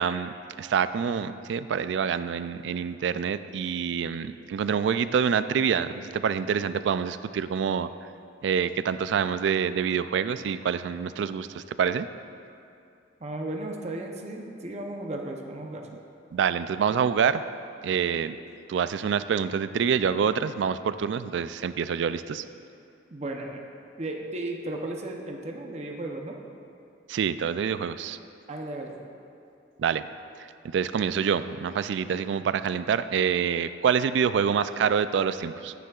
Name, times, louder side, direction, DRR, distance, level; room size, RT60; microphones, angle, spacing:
voice 1, 0.0-7.9 8.4-12.1 16.3-17.4 17.8-18.4 18.7-22.4 27.1-28.2 29.8-30.1 30.7-35.7, right 7 dB, 70° right, 13 dB, 0.3 m, -26 dB
voice 2, 13.2-15.9 23.1-23.6 24.0-26.4 28.5-29.0, right 2 dB, 35° right, 1 dB, 0.7 m, -35 dB
13.5 x 9.3 x 2.4 m, 2.6 s
head